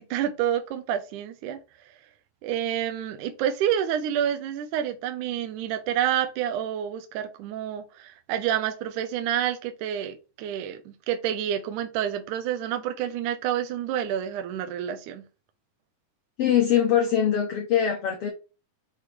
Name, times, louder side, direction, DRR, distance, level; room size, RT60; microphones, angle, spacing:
voice 1, 0.0-1.6 2.4-15.3, right 10 dB, 75° right, 7 dB, 2.0 m, -28 dB
voice 2, 16.4-18.3, left 9 dB, 85° left, 3 dB, 1.3 m, -22 dB
6.4 x 5.0 x 3.5 m, 0.31 s
omnidirectional pair, 4.1 m